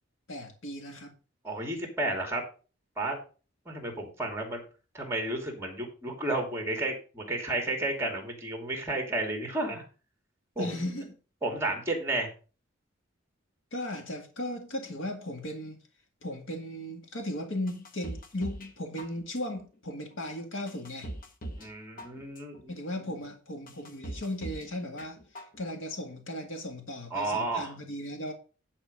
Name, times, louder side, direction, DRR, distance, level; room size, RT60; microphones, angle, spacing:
voice 1, 0.3-1.1 10.6-11.2 13.7-15.8 16.2-21.1 22.7-28.3, left 1 dB, 75° left, 2.0 m, -36 dB
voice 2, 1.4-2.4 3.0-3.2 3.7-4.6 4.9-9.8 10.6-10.8 11.4-12.3 21.6-22.7 27.1-27.7, right 2 dB, 15° right, 2.6 m, -32 dB
sound 1, 17.7-18.7 19.0-19.6 20.1-20.2 20.7-21.7 22.0-22.6 23.1-23.2 23.7-24.7 25.0-25.6 25.9-26.0, right 1 dB, 45° left, 1.2 m, -41 dB
10.5 x 4.3 x 6.5 m
head